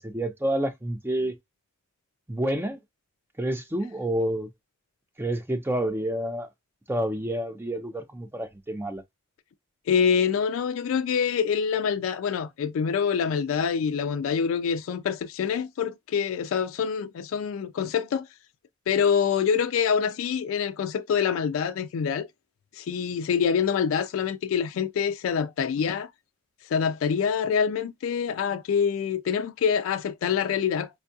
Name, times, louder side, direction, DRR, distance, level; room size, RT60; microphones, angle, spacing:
voice 1, 0.0-1.4 2.3-2.8 3.4-4.5 5.2-6.5 6.9-9.0, right 1 dB, 10° right, 0.4 m, -29 dB
voice 2, 9.9-18.3 18.9-22.3 22.7-26.1 26.7-30.9, left 7 dB, 70° left, 0.3 m, -26 dB
4.4 x 2.3 x 2.6 m
head